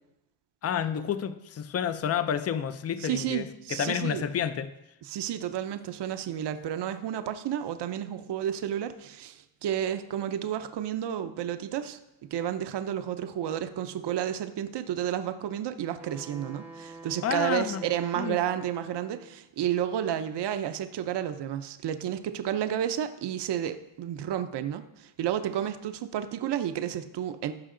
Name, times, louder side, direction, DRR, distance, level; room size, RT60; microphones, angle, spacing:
voice 1, 0.6-4.7 17.2-17.9 18.2-18.4, left 8 dB, 35° left, 0.4 m, -30 dB
voice 2, 3.0-4.2 5.1-12.0 12.3-27.5, right 10 dB, 60° right, 0.7 m, -31 dB
Wind instrument woodwind instrument, 16.0-19.4, right 3 dB, 5° right, 0.7 m, -46 dB
14.5 x 5.7 x 3.8 m
cardioid pair, 130°, 48 cm